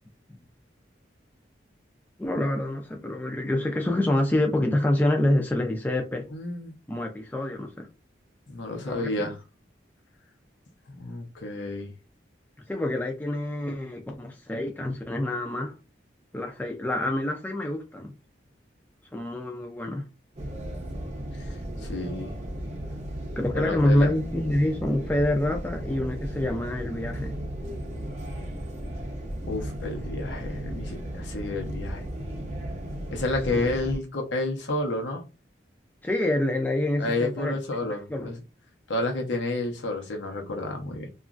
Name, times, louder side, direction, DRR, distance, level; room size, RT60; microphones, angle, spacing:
voice 1, 2.2-6.2 6.9-7.9 8.8-9.3 12.7-15.7 16.3-18.1 19.1-20.1 23.4-27.4 33.5-33.7 36.0-37.6 38.1-38.3, left 1 dB, 10° left, 0.3 m, -26 dB
voice 2, 6.3-6.7 8.5-9.4 10.9-11.9 21.5-21.6 21.8-22.4 23.5-24.1 29.5-32.1 33.1-35.2 37.0-38.4 38.9-41.1, left 2 dB, 80° left, 0.7 m, -30 dB
sound 1, 20.4-34.0, right 1 dB, 35° right, 0.6 m, -35 dB
2.9 x 2.4 x 2.4 m
head